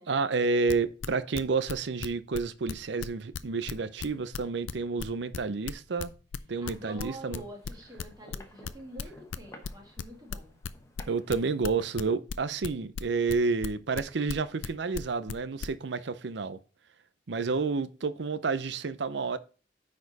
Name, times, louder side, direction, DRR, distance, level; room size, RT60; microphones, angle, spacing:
voice 1, 0.1-6.1 6.5-7.4 11.1-16.6 17.3-19.4, right 4 dB, 65° right, 0.6 m, -30 dB
sound 1, 0.7-2.4 2.7-6.7 7.0-10.7 11.0-15.7, left 6 dB, 85° left, 0.5 m, -36 dB
sound 2, 6.6-12.0, left 1 dB, 15° left, 0.9 m, -55 dB
voice 2, 6.6-10.6, right 1 dB, 20° right, 1.9 m, -46 dB
9.6 x 4.3 x 4.0 m
head